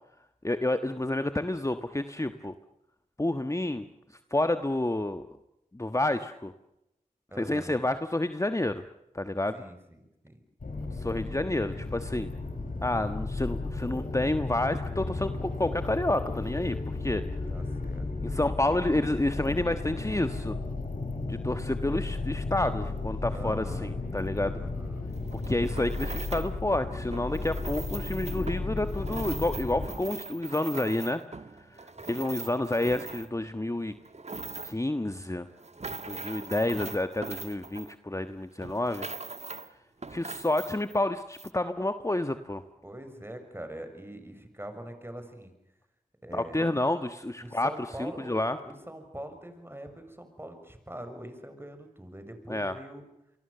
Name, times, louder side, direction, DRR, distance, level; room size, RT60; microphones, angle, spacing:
voice 1, 0.4-2.5 3.2-3.9 4.3-5.3 5.7-6.5 7.4-8.8 9.1-9.6 11.0-12.3 12.8-17.2 18.2-20.6 21.3-24.6 25.3-31.2 31.6-33.9 34.6-35.5 36.1-39.1 40.1-42.6 46.3-47.7 48.0-48.6 52.5-52.8, left 1 dB, 20° left, 9 dB, 1.4 m, -29 dB
voice 2, 7.3-7.8 9.5-10.4 17.5-18.1 23.3-23.9 24.5-25.1 32.0-32.3 42.8-45.5 46.2-46.7 47.4-53.0, right 1 dB, 15° right, 7 dB, 6.9 m, -43 dB
sound 1, 10.6-29.9, left 3 dB, 70° left, 6.8 m, -34 dB
sound 2, 25.1-26.6 27.1-33.5 33.9-34.9 35.4-38.3 38.6-39.7 40.0-41.0 41.3-41.5, right 3 dB, 50° right, 1.4 m, -41 dB
28.5 x 23.5 x 6.9 m, 0.89 s
cardioid pair, 45°, 15 cm